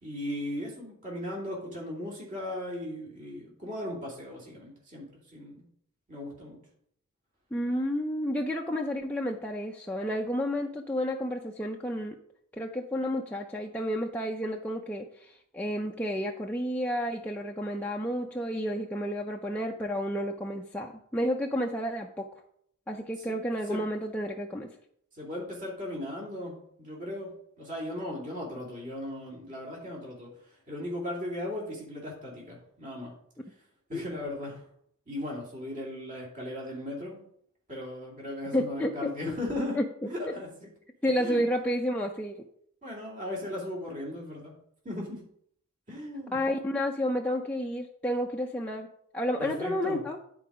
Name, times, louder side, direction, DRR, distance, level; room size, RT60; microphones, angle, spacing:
voice 1, 0.0-5.6 6.1-6.6 23.3-23.4 23.7-23.8 25.2-27.3 27.6-30.3 30.7-33.1 33.9-34.6 35.1-37.2 37.7-39.8 40.0-40.7 41.2-41.4 42.8-44.5 44.8-45.2 45.9-46.4 49.4-50.0, left 1 dB, 40° right, -3 dB, 2.8 m, -37 dB
voice 2, 7.5-12.1 12.5-22.3 22.9-24.7 33.9-34.0 38.5-39.3 39.8-39.9 41.0-42.4 46.3-48.9 49.1-50.2, equal, 5° left, -1 dB, 0.5 m, -31 dB
10.0 x 4.7 x 4.9 m, 0.67 s
head